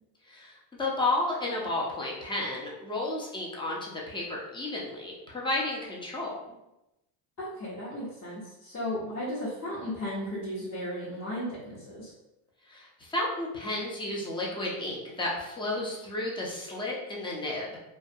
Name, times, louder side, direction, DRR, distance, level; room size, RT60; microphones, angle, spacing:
voice 1, 0.3-6.5 12.7-17.7, left 2 dB, 10° left, -3 dB, 0.4 m, -32 dB
voice 2, 7.4-12.1, equal, 35° left, -10 dB, 0.9 m, -35 dB
2.3 x 2.1 x 2.6 m, 0.93 s
supercardioid pair, 105°, 48 cm